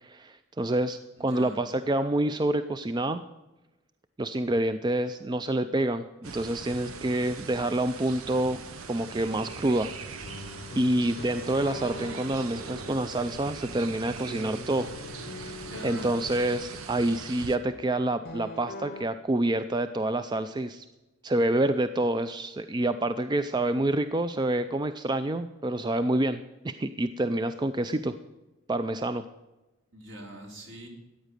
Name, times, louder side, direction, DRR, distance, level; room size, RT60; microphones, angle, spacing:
voice 1, 0.0-3.2 4.2-8.6 8.9-9.9 10.3-14.9 15.2-20.9 21.2-28.1 28.7-29.3, right 1 dB, 20° right, 11 dB, 0.4 m, -28 dB
voice 2, 1.2-1.7 15.6-16.2 29.9-30.9, right 1 dB, 60° right, 2 dB, 3.1 m, -43 dB
sound 1, 6.2-17.6, right 5 dB, 90° right, 1.0 m, -41 dB
sound 2, 9.2-19.1, left 3 dB, 45° left, 0.7 m, -44 dB
14.0 x 9.1 x 6.7 m, 1.1 s
head